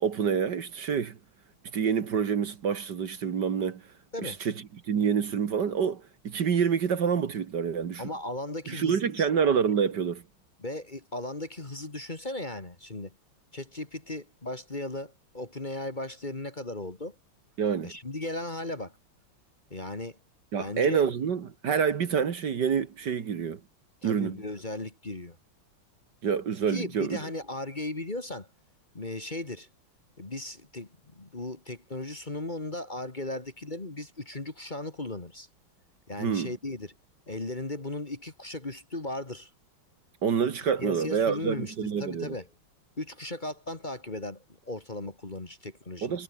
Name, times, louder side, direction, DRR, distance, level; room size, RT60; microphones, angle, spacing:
voice 1, 0.0-1.2 1.7-3.8 4.2-4.5 4.9-8.0 8.7-10.2 17.6-17.9 20.5-23.6 24.0-24.4 26.2-27.2 36.2-36.5 40.2-42.3 46.0-46.2, right 7 dB, 60° right, 2.0 m, -27 dB
voice 2, 8.0-9.3 10.6-13.2 13.5-17.2 17.8-19.0 19.7-20.2 20.6-21.0 24.0-25.4 26.7-28.5 28.9-29.7 30.2-35.5 36.1-36.9 37.3-39.5 40.8-42.5 43.0-46.2, left 2 dB, 25° left, 2.0 m, -37 dB
omnidirectional pair, 2.2 m